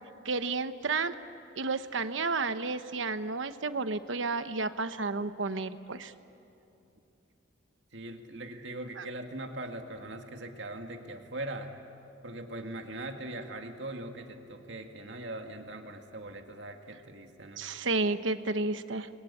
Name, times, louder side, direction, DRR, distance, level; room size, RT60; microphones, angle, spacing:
voice 1, 0.2-1.1 1.6-6.1 9.0-9.1 17.6-19.1, right 3 dB, 90° right, 11 dB, 1.1 m, -31 dB
voice 2, 7.9-11.7 12.2-17.7, right 1 dB, 70° right, 4 dB, 2.1 m, -41 dB
29.0 x 22.0 x 8.7 m, 2.8 s
head